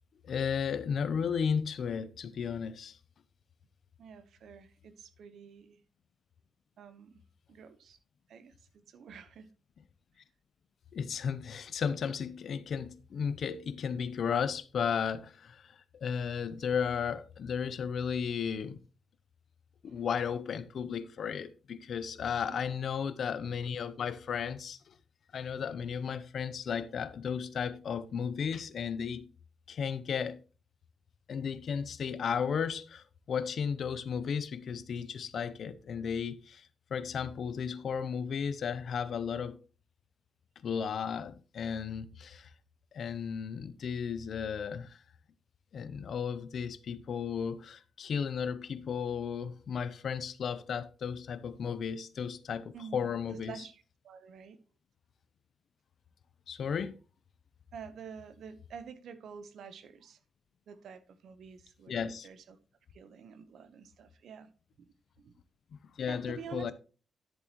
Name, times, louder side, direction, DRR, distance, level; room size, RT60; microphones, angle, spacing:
voice 1, 0.2-3.0 10.9-18.8 19.8-24.9 25.3-29.3 29.7-30.4 31.3-39.6 40.6-42.5 42.9-45.0 45.7-53.6 56.5-56.9 61.9-62.3 66.0-66.7, left 7 dB, 60° left, 0.7 m, -34 dB
voice 2, 4.0-5.8 6.8-7.2 7.5-8.0 8.3-8.5 8.9-9.5 19.9-20.0 22.5-22.8 52.7-54.6 57.7-60.2 60.7-62.6 62.9-64.5 64.8-64.9 65.2-65.3 66.1-66.7, right 7 dB, 75° right, 1.0 m, -48 dB
10.5 x 7.5 x 3.0 m
cardioid pair, 115°, 0 cm